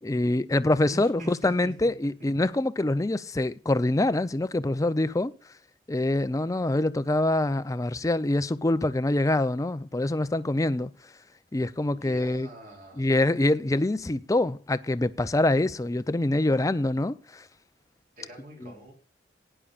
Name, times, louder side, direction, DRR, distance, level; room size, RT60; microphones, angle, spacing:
voice 1, 0.0-5.3 5.9-10.9 11.5-12.5 13.0-17.5 18.6-18.7, left 2 dB, 20° left, 0.5 m, -25 dB
voice 2, 0.9-1.9 11.9-13.1 18.2-18.9, right 1 dB, 50° right, 4.4 m, -44 dB
18.5 x 9.9 x 2.4 m
head